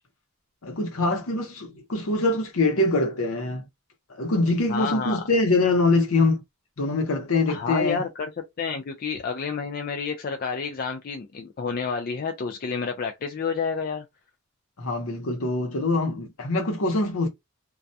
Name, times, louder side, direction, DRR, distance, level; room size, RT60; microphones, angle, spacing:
voice 1, 0.6-3.7 4.1-6.4 6.8-8.0 14.8-17.3, left 2 dB, 65° left, 0.8 m, -24 dB
voice 2, 4.7-5.2 7.5-8.3 8.6-14.0, left 5 dB, 40° left, 0.3 m, -29 dB
2.3 x 2.1 x 2.6 m
head